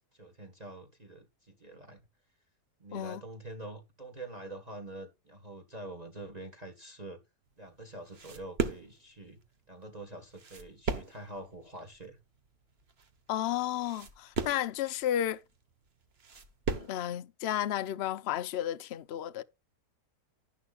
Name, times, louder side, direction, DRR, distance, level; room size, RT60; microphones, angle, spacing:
voice 1, 0.1-2.0 2.8-7.2 7.6-9.4 9.7-12.2, right 2 dB, 25° right, 1.8 m, -45 dB
sound 1, 7.5-17.0, right 5 dB, 40° right, 1.4 m, -38 dB
voice 2, 13.3-15.4 16.8-19.4, left 11 dB, 60° left, 0.6 m, -32 dB
11.5 x 11.0 x 2.5 m
omnidirectional pair, 1.8 m